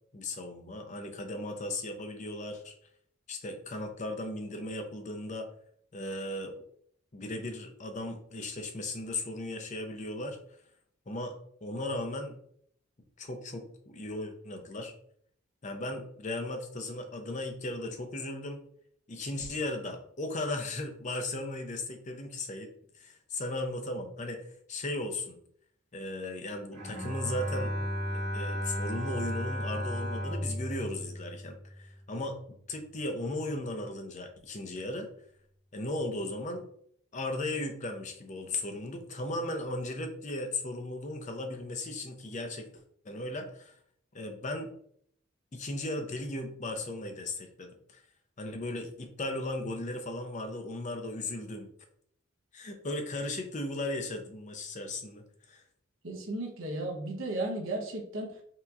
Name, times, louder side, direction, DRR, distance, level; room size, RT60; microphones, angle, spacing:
voice 1, 0.1-2.7 3.3-5.5 5.9-6.5 7.1-10.4 11.1-11.3 11.6-12.4 13.2-14.9 15.6-18.6 19.1-22.7 22.9-25.4 25.9-27.7 28.3-32.4 32.7-35.1 35.7-36.7 37.1-42.7 43.0-43.7 44.1-44.7 45.5-48.0 48.4-51.7 52.5-55.6, left 2 dB, 35° left, 5 dB, 0.6 m, -36 dB
Bowed string instrument, 26.7-32.0, equal, 50° right, 1.5 m, -34 dB
voice 2, 56.0-58.4, right 2 dB, 80° right, -1 dB, 1.0 m, -35 dB
5.7 x 2.9 x 2.4 m, 0.65 s
head